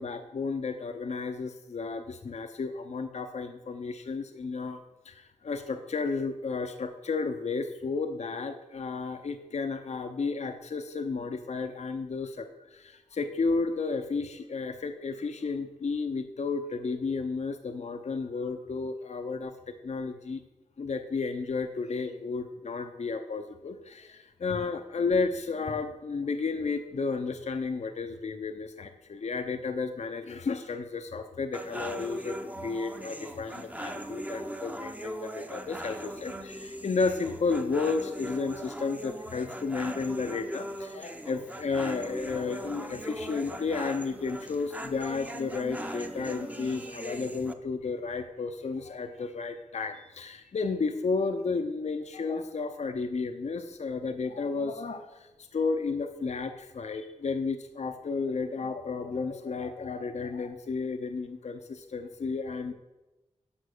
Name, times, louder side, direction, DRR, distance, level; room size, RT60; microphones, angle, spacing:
voice 1, 0.0-4.8 5.0-20.4 20.8-62.7, left 4 dB, 60° left, 7 dB, 0.7 m, -32 dB
sound 1, 31.5-47.5, right 1 dB, 10° right, 0.8 m, -39 dB
11.5 x 5.2 x 6.6 m, 1.1 s
wide cardioid pair, 75°, 13 cm